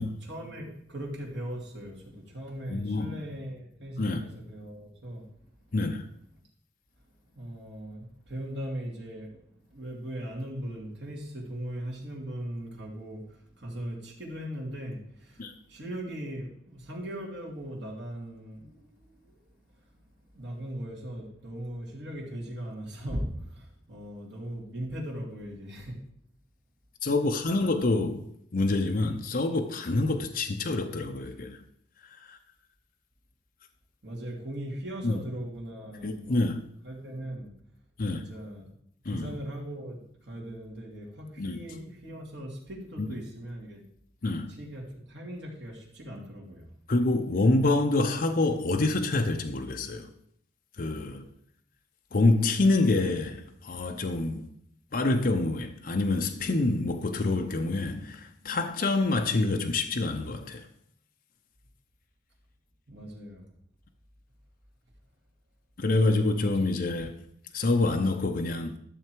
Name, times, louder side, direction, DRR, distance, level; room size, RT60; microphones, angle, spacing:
voice 1, 0.2-5.3 7.3-9.4 9.7-20.0 20.3-26.0 34.0-36.4 36.8-37.5 38.1-38.7 39.0-43.8 44.5-46.7 62.9-63.5, equal, 65° right, 2.9 m, -39 dB
voice 2, 2.7-3.2 4.0-4.2 5.7-6.0 15.4-15.5 27.0-28.3 28.5-31.6 32.2-32.4 35.0-35.2 36.0-36.6 38.0-38.2 39.0-39.3 41.4-41.6 43.0-43.1 44.2-44.5 46.9-50.1 50.8-51.2 52.1-54.5 54.9-60.7 65.8-67.2 67.5-68.8, left 2 dB, 50° left, 0.7 m, -26 dB
12.5 x 6.8 x 4.6 m
head